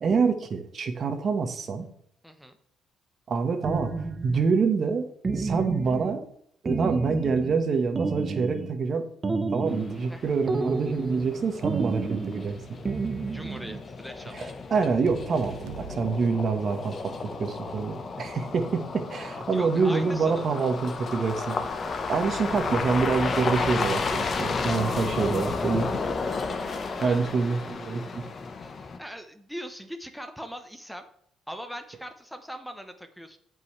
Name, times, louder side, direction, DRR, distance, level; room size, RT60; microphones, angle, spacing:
voice 1, 0.0-1.9 3.3-5.1 5.3-6.2 6.6-9.1 9.5-12.5 14.3-26.0 26.5-28.2, right 5 dB, 45° right, 7 dB, 1.3 m, -26 dB
voice 2, 2.2-2.6 10.1-10.3 13.3-14.3 19.5-20.6 27.0-27.2 29.0-31.1 31.5-33.4, equal, ahead, 7 dB, 0.9 m, -40 dB
sound 1, 3.6-4.5 5.2-6.2 6.7-7.6 8.0-8.8 9.2-10.1 10.5-11.3 11.6-12.5 12.9-13.8, right 3 dB, 25° right, 0.9 m, -30 dB
sound 2, 9.7-29.0, left 4 dB, 40° left, 1.1 m, -33 dB
sound 3, 14.7-17.3, right 7 dB, 85° right, 1.1 m, -43 dB
15.0 x 5.4 x 3.3 m, 0.67 s
cardioid pair, 110°, 0 cm